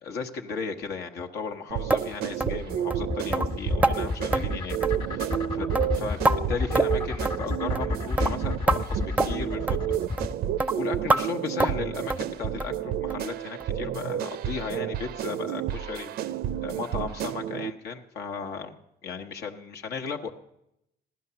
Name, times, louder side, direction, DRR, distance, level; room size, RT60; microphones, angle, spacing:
voice 1, 0.0-4.8 5.6-9.8 10.7-16.3 16.6-18.8 19.0-20.3, left 5 dB, 75° left, 4 dB, 1.1 m, -35 dB
sound 1, 1.7-17.7, right 11 dB, 70° right, 0.5 m, -31 dB
sound 2, 1.9-2.1 2.4-2.6 2.9-3.0 3.3-3.5 3.8-4.0 4.3-4.5 4.8-5.1 5.3-5.5 5.8-6.4 6.8-7.0 7.3-7.4 7.8-7.9 8.2-8.3 8.7-8.8 9.2-9.3 9.7-9.8 10.2-10.3 10.6-10.7 11.1-11.2 11.6-11.8 12.1-12.3 12.6-12.8 13.1-13.2 13.6-13.7 14.1-14.2, right 2 dB, 10° right, 0.5 m, -25 dB
sound 3, 2.1-10.3, left 3 dB, 25° left, 1.4 m, -30 dB
15.5 x 11.5 x 6.8 m, 0.82 s
cardioid pair, 110°, 17 cm